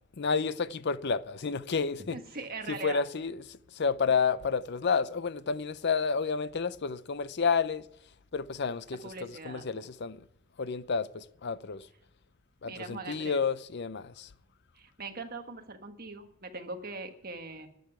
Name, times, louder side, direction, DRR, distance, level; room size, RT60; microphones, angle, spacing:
voice 1, 0.2-2.2 2.7-7.9 8.3-9.1 9.4-10.2 10.6-11.9 12.6-14.3, left 5 dB, 50° left, 0.6 m, -30 dB
voice 2, 2.1-3.0 9.0-9.9 12.6-13.4 14.7-17.7, right 3 dB, 40° right, 1.5 m, -41 dB
11.5 x 7.9 x 9.2 m
head